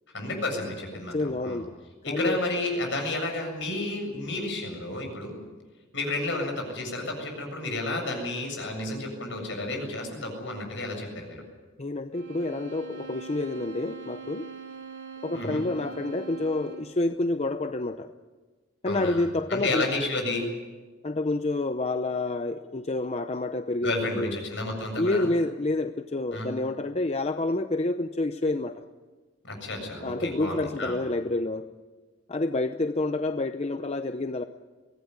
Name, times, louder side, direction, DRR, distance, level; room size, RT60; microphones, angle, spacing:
voice 1, 0.1-1.2 1.4-1.6 2.0-5.4 5.9-11.4 15.3-15.6 18.8-20.5 23.8-25.3 26.3-26.5 29.4-31.0, left 2 dB, 70° left, 3 dB, 7.6 m, -31 dB
voice 2, 1.1-1.7 2.1-2.4 11.8-14.5 15.2-18.1 18.8-19.8 21.0-24.3 25.0-28.9 30.0-31.6 32.3-34.4, left 2 dB, 35° left, 8 dB, 0.7 m, -28 dB
sound 1, 12.1-17.0, right 5 dB, 65° right, 3.3 m, -42 dB
23.5 x 18.0 x 9.6 m, 1.3 s
head